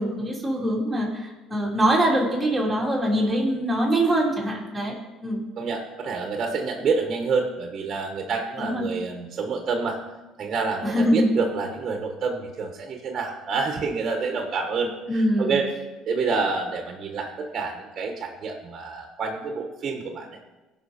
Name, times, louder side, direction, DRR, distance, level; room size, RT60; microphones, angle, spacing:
voice 1, 0.0-4.9 5.2-5.4 8.6-8.8 10.8-11.3 15.1-15.6, right 1 dB, 5° right, -4 dB, 3.3 m, -23 dB
voice 2, 5.6-10.0 10.4-15.7 16.1-20.3, right 4 dB, 45° right, 3 dB, 1.4 m, -28 dB
16.5 x 5.7 x 4.3 m, 1.1 s
supercardioid pair, 95°, 0 cm